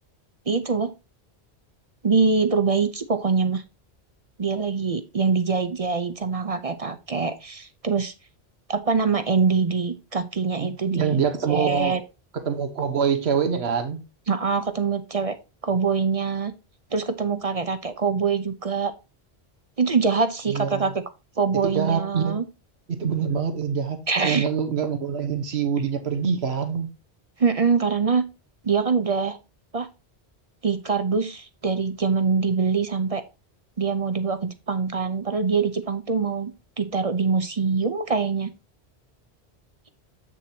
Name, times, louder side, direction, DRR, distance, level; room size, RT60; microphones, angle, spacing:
voice 1, 0.5-0.9 2.0-3.6 4.4-8.1 8.7-11.2 11.5-12.0 14.3-15.4 15.6-16.5 16.9-18.9 19.8-21.0 21.4-22.4 24.1-24.5 27.4-28.2 28.6-29.4 29.7-29.9 30.6-33.2 33.8-38.5, right 5 dB, 40° right, 0.7 m, -24 dB
voice 2, 10.6-12.0 12.3-14.0 20.5-20.8 21.6-22.4 22.9-24.0 24.2-26.9, right 7 dB, 75° right, 1.4 m, -25 dB
7.9 x 7.0 x 2.8 m
omnidirectional pair, 1.1 m